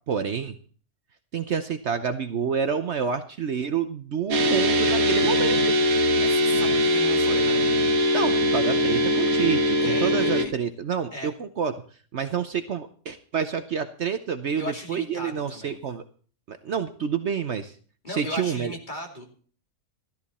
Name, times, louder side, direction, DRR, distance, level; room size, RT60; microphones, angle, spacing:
voice 1, 0.1-0.6 1.3-5.6 8.1-11.7 12.1-16.0 16.5-17.7 18.1-18.8, right 7 dB, 55° right, 10 dB, 1.0 m, -28 dB
sound 1, 4.3-10.5, left 1 dB, 75° right, 1.7 m, -21 dB
voice 2, 6.2-7.7 9.8-10.5 11.1-11.3 14.6-15.8 18.0-19.3, left 1 dB, 30° left, 2 dB, 2.9 m, -36 dB
13.5 x 13.5 x 4.2 m, 0.43 s
omnidirectional pair, 1.5 m